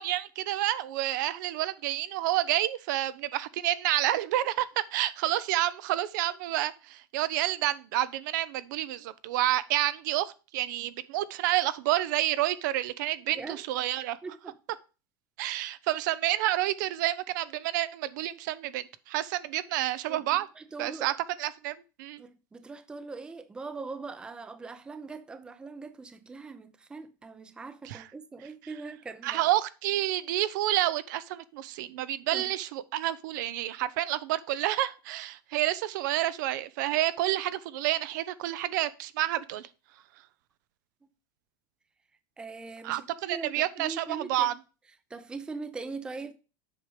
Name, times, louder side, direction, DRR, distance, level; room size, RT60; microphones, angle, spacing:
voice 1, 0.0-4.7 4.9-14.2 15.4-20.5 20.8-21.1 21.4-22.2 27.8-28.1 29.2-39.7 42.8-44.5, right 14 dB, 70° right, 0.7 m, -29 dB
voice 2, 13.3-13.6 14.2-14.6 20.1-21.2 22.2-29.4 32.3-32.5 41.0-41.1 42.4-43.0 43.3-44.5 45.1-46.3, right 4 dB, 10° right, 0.5 m, -41 dB
7.8 x 5.1 x 4.8 m
supercardioid pair, 160°, 10 cm